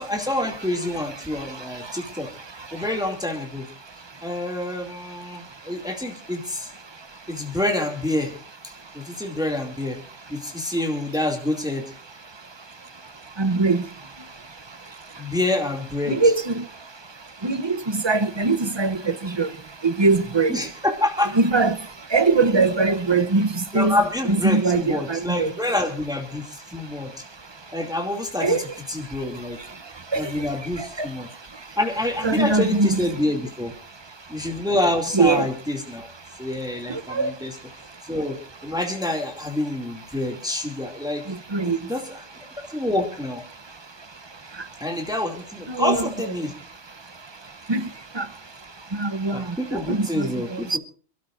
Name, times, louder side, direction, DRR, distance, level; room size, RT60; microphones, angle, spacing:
voice 1, 0.0-2.3 2.7-3.7 4.2-6.7 7.3-8.4 8.6-10.0 10.3-11.8 15.2-16.2 20.5-21.3 23.7-27.1 27.7-29.6 30.1-31.3 31.8-33.7 34.3-36.1 36.4-37.5 38.1-38.4 38.6-41.2 41.5-42.2 42.7-43.4 44.8-46.5 49.3-50.8, left 1 dB, 5° right, 2.5 m, -27 dB
voice 2, 13.4-13.8 16.1-16.6 17.4-19.5 19.8-20.5 21.3-21.8 22.1-23.5 23.7-25.5 28.4-28.6 30.1-30.2 32.2-33.0 35.1-35.5 36.9-37.3 41.5-41.8 45.7-46.1 47.7-47.9 48.2-48.3 49.0-49.4 49.7-50.3 50.7-50.8, right 3 dB, 25° right, 0.7 m, -21 dB
29.0 x 13.0 x 2.6 m
omnidirectional pair, 1.2 m